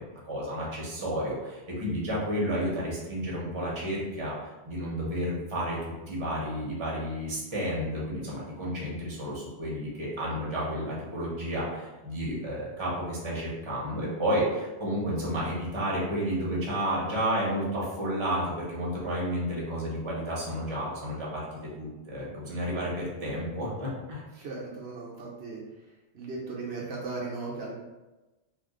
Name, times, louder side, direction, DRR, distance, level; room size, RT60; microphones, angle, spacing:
voice 1, 0.0-21.4 21.8-24.2, equal, 30° right, -6 dB, 0.8 m, -31 dB
voice 2, 24.3-25.9 26.1-27.8, right 3 dB, 70° right, -3 dB, 0.9 m, -37 dB
2.5 x 2.4 x 3.6 m, 1.1 s
omnidirectional pair, 1.1 m